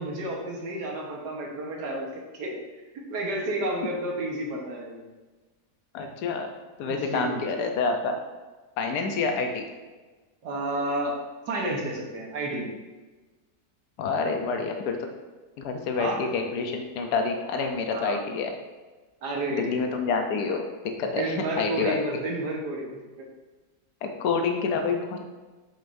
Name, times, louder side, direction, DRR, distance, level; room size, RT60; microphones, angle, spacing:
voice 1, 0.0-2.6 2.9-5.0 6.9-7.4 10.4-11.1 11.5-12.8 16.0-16.2 17.5-17.6 17.9-18.2 19.2-19.6 21.2-23.3, right 1 dB, 85° right, -1 dB, 1.8 m, -31 dB
voice 2, 5.9-6.5 6.8-8.2 8.8-9.6 14.0-15.0 15.6-18.5 19.5-20.6 21.0-22.0 24.0-25.2, left 4 dB, 75° left, 4 dB, 1.3 m, -27 dB
8.3 x 6.5 x 2.6 m, 1.3 s
omnidirectional pair, 1.7 m